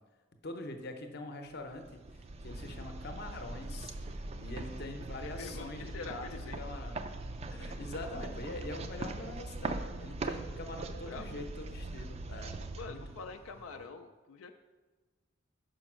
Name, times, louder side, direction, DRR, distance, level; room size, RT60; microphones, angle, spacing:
voice 1, 0.4-2.0 2.4-7.0 7.5-12.5 12.9-13.3 13.7-13.8, left 2 dB, 55° left, 6 dB, 0.7 m, -44 dB
sound 1, 1.7-13.7, right 2 dB, 30° right, 0.3 m, -41 dB
voice 2, 5.4-6.6 11.0-11.3 12.8-14.5, left 5 dB, 85° left, 5 dB, 0.4 m, -45 dB
5.2 x 5.1 x 6.0 m, 1.3 s
head